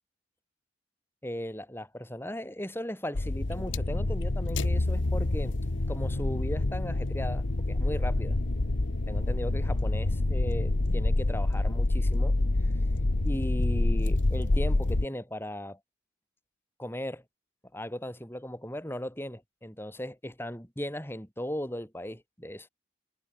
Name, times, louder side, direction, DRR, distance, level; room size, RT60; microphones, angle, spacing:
voice 1, 1.2-5.6 5.9-8.4 9.1-12.4 13.2-15.8 16.8-17.2 17.7-22.7, equal, 10° left, 6.3 m, -37 dB
sound 1, 3.1-15.0, left 2 dB, 90° left, 1.2 m, -27 dB
head